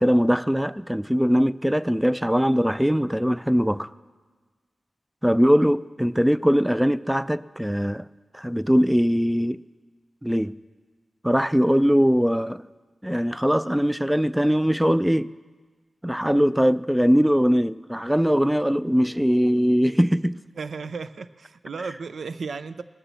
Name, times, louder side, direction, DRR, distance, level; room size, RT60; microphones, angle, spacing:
voice 1, 0.0-3.9 5.2-8.1 8.3-9.6 10.2-10.5 11.2-12.7 13.0-15.3 16.0-20.4, equal, 5° right, 0.4 m, -21 dB
voice 2, 20.6-22.8, right 4 dB, 80° right, 0.5 m, -34 dB
19.5 x 7.1 x 7.0 m
cardioid pair, 55°, 0 cm